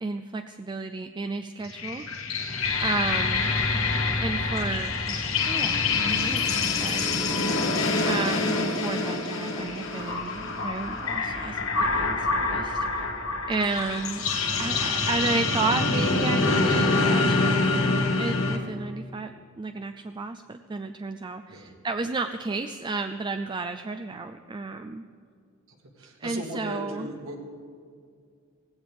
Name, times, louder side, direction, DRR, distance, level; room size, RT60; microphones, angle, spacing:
voice 1, 0.0-2.0 2.8-3.5 4.2-7.2 8.1-12.9 13.5-25.0 26.2-27.1, right 3 dB, 20° right, 8 dB, 0.4 m, -32 dB
sound 1, 1.6-18.6, left 3 dB, 70° left, 1.4 m, -26 dB
voice 2, 2.6-3.0 7.5-7.8 17.3-17.6 21.5-21.7 25.7-27.4, right 1 dB, 70° right, 0 dB, 2.2 m, -39 dB
18.0 x 16.0 x 3.5 m, 2.2 s
head